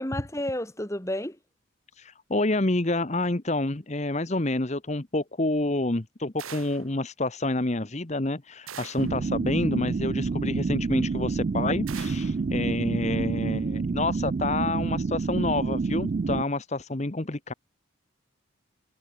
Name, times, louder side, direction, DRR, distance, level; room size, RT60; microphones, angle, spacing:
voice 1, 0.0-1.4, left 1 dB, 15° left, 2.1 m, -31 dB
voice 2, 2.0-17.5, left 2 dB, 35° left, 1.1 m, -28 dB
sound 1, 6.4-6.9 8.7-9.2 11.9-12.4, right 8 dB, 90° right, 1.5 m, -42 dB
sound 2, 9.0-16.4, right 4 dB, 40° right, 0.3 m, -28 dB
head